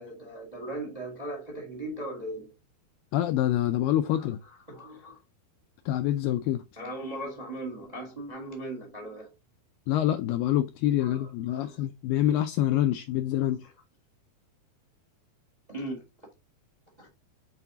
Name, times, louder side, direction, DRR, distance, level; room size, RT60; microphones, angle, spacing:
voice 1, 0.0-2.5 4.1-5.2 6.8-9.3 11.0-11.9 13.4-13.7 15.7-16.0 17.0-17.1, right 1 dB, 55° right, 0.4 m, -39 dB
voice 2, 3.1-4.4 5.9-6.6 9.9-13.6, left 12 dB, 85° left, 2.0 m, -26 dB
8.1 x 4.5 x 2.7 m
omnidirectional pair, 4.5 m